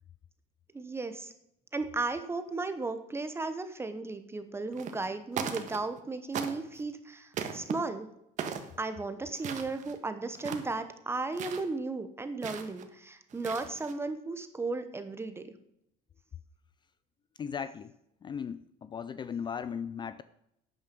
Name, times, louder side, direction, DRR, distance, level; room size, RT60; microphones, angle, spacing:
voice 1, 0.7-1.3 1.7-8.1 8.8-15.5, right 3 dB, 15° right, 9 dB, 0.9 m, -35 dB
sound 1, 4.7-5.1 5.3-6.0 6.3-6.8 7.3-7.7 8.4-8.7 9.3-10.0 10.3-10.8 11.3-11.6 12.4-12.8 13.3-13.9, right 7 dB, 45° right, 1.5 m, -38 dB
voice 2, 17.4-17.9 18.2-20.2, left 7 dB, 25° left, 14 dB, 0.4 m, -37 dB
12.0 x 9.0 x 5.3 m, 0.79 s
cardioid pair, 125°, 17 cm